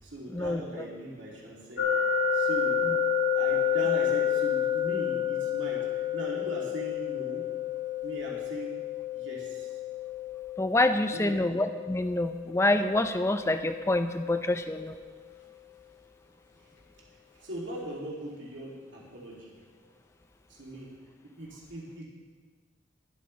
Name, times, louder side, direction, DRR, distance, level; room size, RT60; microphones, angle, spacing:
voice 1, 0.0-1.9 2.3-2.8 3.3-7.4 8.0-8.8 9.1-9.7 11.0-11.5 17.4-19.6 20.5-20.9 21.4-22.0, right 1 dB, 80° right, -4 dB, 2.5 m, -40 dB
sound 1, 1.8-14.7, left 7 dB, 80° left, 1.9 m, -30 dB
voice 2, 10.6-15.0, left 2 dB, 15° left, 9 dB, 0.4 m, -27 dB
21.0 x 8.1 x 3.2 m, 1.5 s
head